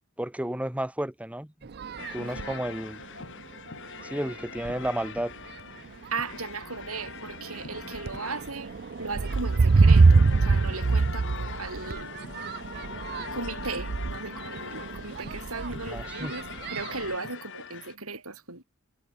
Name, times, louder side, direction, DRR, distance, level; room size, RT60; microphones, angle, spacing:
voice 1, 0.2-1.5 2.1-3.0 4.0-5.3 12.9-13.1 15.9-16.3, right 1 dB, 5° right, 0.9 m, -32 dB
sound 1, 1.6-2.7 3.4-3.5 4.0-4.3 4.6-5.2 5.9-6.1 6.5-17.2, right 4 dB, 45° right, 0.5 m, -25 dB
sound 2, 2.0-17.9, left 5 dB, 55° left, 5.5 m, -42 dB
voice 2, 2.2-2.5 6.1-8.7 9.0-12.1 13.3-18.6, right 4 dB, 70° right, 6.7 m, -37 dB
head